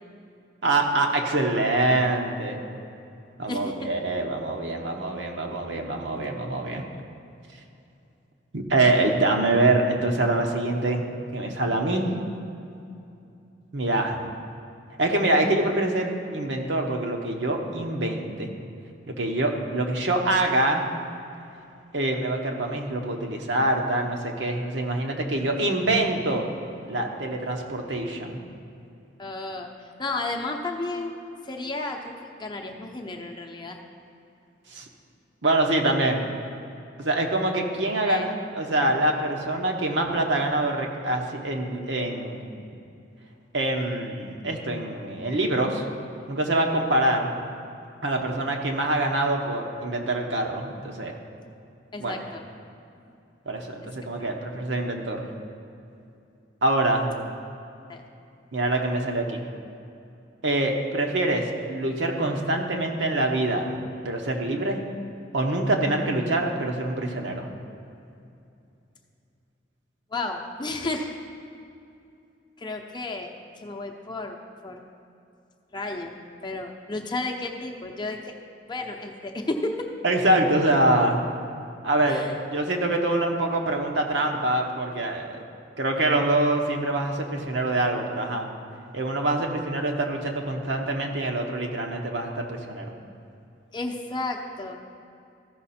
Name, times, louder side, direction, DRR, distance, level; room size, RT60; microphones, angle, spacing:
voice 1, 0.6-2.6 3.4-6.8 8.5-11.1 11.3-12.1 13.7-14.2 15.0-18.5 19.2-20.8 21.9-26.4 26.8-28.4 34.7-34.8 35.4-36.2 37.0-42.4 43.5-45.8 46.3-47.3 48.0-51.1 52.0-52.2 53.5-55.3 56.6-57.1 58.5-59.5 60.4-63.8 64.0-64.8 65.3-67.5 80.0-81.2 81.8-85.4 85.8-88.5 88.9-92.9, right 2 dB, 70° right, 2 dB, 1.1 m, -25 dB
voice 2, 3.5-3.9 29.2-29.7 30.0-33.8 38.0-38.3 51.9-52.4 53.0-53.1 54.2-54.3 57.9-58.0 70.1-71.1 72.6-74.4 74.6-74.8 75.7-78.4 78.6-79.9 82.1-82.4 93.7-94.8, left 2 dB, 25° left, 2 dB, 0.7 m, -32 dB
14.5 x 5.8 x 4.3 m, 2.6 s
head